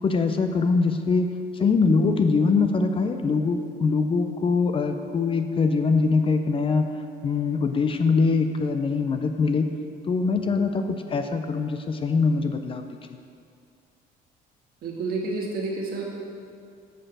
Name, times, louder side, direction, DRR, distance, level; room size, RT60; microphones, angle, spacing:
voice 1, 0.0-6.9 7.2-9.7 10.1-12.8 13.1-13.2, left 4 dB, 30° left, 7 dB, 0.5 m, -23 dB
voice 2, 14.8-16.1, right 3 dB, 65° right, -1 dB, 1.5 m, -29 dB
6.7 x 4.9 x 6.0 m, 2.3 s
cardioid pair, 110°, 17 cm